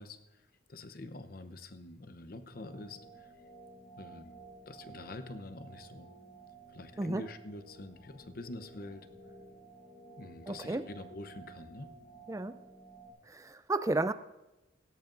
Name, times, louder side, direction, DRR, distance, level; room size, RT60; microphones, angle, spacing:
voice 1, 0.0-3.3 4.0-4.4 4.7-6.1 6.7-9.1 10.2-11.9, left 2 dB, 50° left, 10 dB, 0.8 m, -46 dB
sound 1, 2.5-13.1, right 3 dB, 75° left, 3.7 m, -54 dB
voice 2, 10.5-10.8 12.3-12.6 13.3-14.1, right 2 dB, 15° right, 12 dB, 0.4 m, -32 dB
17.0 x 16.5 x 2.6 m, 1.0 s
head